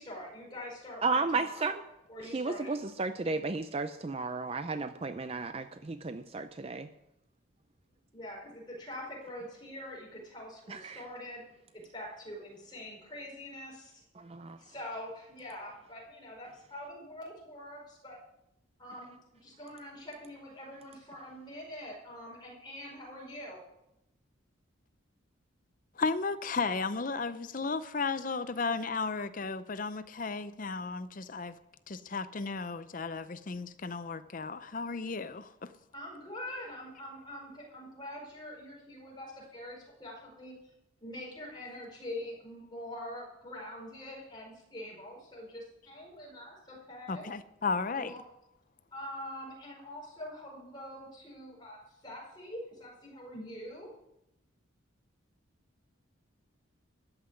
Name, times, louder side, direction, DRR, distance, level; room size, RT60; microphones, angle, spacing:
voice 1, 0.0-1.7 2.1-2.8 5.8-5.9 8.1-11.4 11.7-14.0 14.6-18.2 18.8-23.6 35.9-40.5 41.0-47.3 47.9-48.2 48.9-53.9, left 1 dB, 20° left, 5.0 m, -44 dB
voice 2, 1.0-1.8 2.3-6.9 10.7-11.0 14.2-14.6, right 3 dB, 30° right, 0.4 m, -33 dB
voice 3, 26.0-31.6 31.9-35.7 47.1-48.1, left 4 dB, 40° left, 0.6 m, -34 dB
13.5 x 5.8 x 9.7 m
head